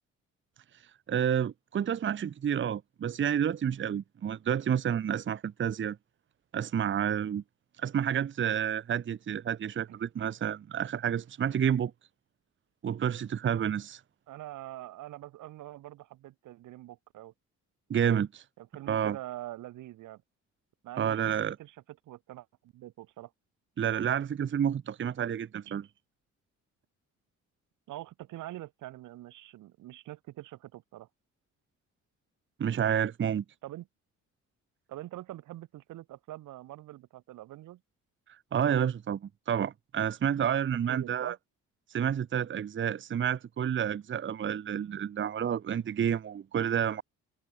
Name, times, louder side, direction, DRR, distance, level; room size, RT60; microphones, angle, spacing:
voice 1, 1.1-6.0 6.5-7.4 7.8-11.9 12.8-14.0 17.9-18.4 18.9-19.2 21.0-21.6 23.8-25.8 32.6-33.4 38.5-41.3 41.9-47.0, right 9 dB, 40° right, 0.8 m, -29 dB
voice 2, 14.3-17.3 18.6-20.2 20.8-21.8 22.1-23.3 25.7-25.8 27.9-31.1 33.6-33.9 34.9-37.8 40.9-41.4, right 15 dB, 85° right, 2.2 m, -44 dB
cardioid pair, 90°, 30 cm